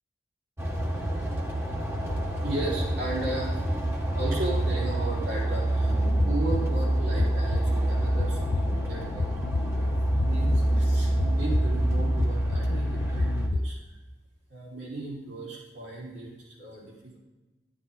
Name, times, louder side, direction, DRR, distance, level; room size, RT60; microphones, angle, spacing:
sound 1, 0.6-13.5, right 1 dB, 15° right, 1.4 m, -27 dB
voice 1, 2.2-3.6 4.1-6.0 6.2-13.8 14.5-17.2, right 2 dB, 70° right, -5 dB, 4.2 m, -36 dB
sound 2, 5.9-13.6, left 3 dB, 50° left, 0.4 m, -33 dB
11.5 x 9.9 x 4.1 m, 1.1 s
head